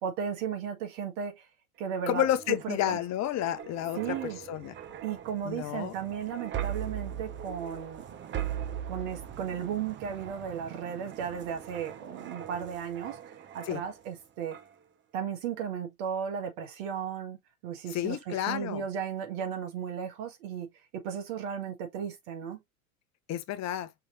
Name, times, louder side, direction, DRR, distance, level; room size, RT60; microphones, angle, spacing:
voice 1, 0.0-1.5 1.8-3.0 4.0-4.4 5.0-8.0 8.9-13.2 13.5-14.6 15.1-17.4 17.6-20.7 20.9-22.6, right 8 dB, 60° right, 1.8 m, -35 dB
sound 1, 1.8-14.2 14.5-14.8, right 10 dB, 25° right, 0.7 m, -40 dB
voice 2, 2.1-4.2 4.5-4.7 5.4-6.0 13.6-13.8 17.9-18.8 23.3-23.9, left 12 dB, 40° left, 0.8 m, -30 dB
5.7 x 3.1 x 2.6 m
hypercardioid pair, 85°, 42 cm